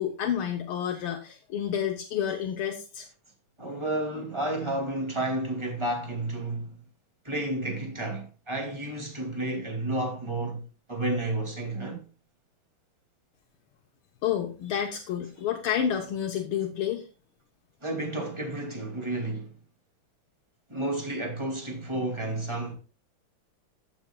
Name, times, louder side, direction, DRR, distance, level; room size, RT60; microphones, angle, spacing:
voice 1, 0.0-3.1 14.2-17.0, left 9 dB, 80° left, 1.8 m, -29 dB
voice 2, 3.6-6.7 7.2-10.6 10.9-12.0 17.8-19.5 20.7-22.7, right 2 dB, 15° right, 2.2 m, -31 dB
14.5 x 7.1 x 2.2 m
omnidirectional pair, 2.4 m